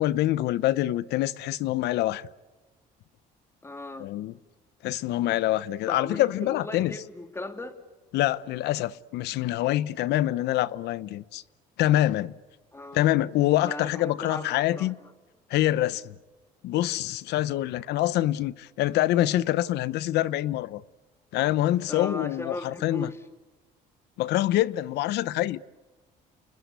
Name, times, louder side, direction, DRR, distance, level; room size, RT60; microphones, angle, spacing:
voice 1, 0.0-2.3 4.0-4.3 4.8-6.9 8.1-11.4 11.8-12.3 12.9-15.0 15.5-16.1 16.6-20.8 21.3-23.1 24.2-25.6, left 14 dB, 80° left, 0.9 m, -25 dB
voice 2, 3.6-4.1 5.9-7.7 12.7-13.0 13.6-15.1 21.9-23.2, left 2 dB, 15° left, 3.1 m, -37 dB
30.0 x 21.0 x 8.2 m
cardioid pair, 110°, 17 cm